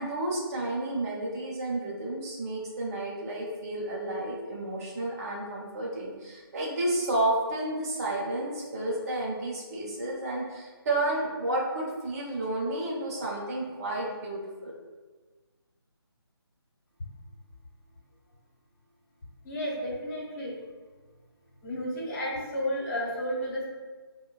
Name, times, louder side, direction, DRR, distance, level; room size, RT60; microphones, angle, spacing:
voice 1, 0.0-14.7, right 1 dB, 40° right, -5 dB, 0.7 m, -31 dB
voice 2, 19.4-20.5 21.6-23.7, equal, 40° left, -5 dB, 1.1 m, -32 dB
4.4 x 2.2 x 2.2 m, 1.3 s
figure-of-eight pair, 155°, 13 cm